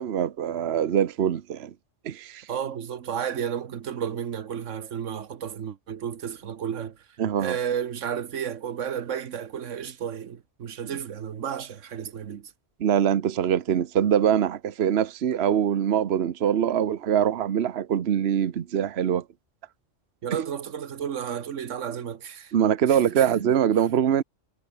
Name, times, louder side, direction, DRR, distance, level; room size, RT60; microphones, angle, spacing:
voice 1, 0.0-1.7 2.0-2.5 7.2-7.6 12.8-19.2 22.5-24.2, right 9 dB, 60° right, 1.1 m, -23 dB
voice 2, 2.5-7.0 7.4-12.5 20.2-22.5 22.9-23.5, right 8 dB, 85° right, 1.4 m, -32 dB
omnidirectional pair, 1.2 m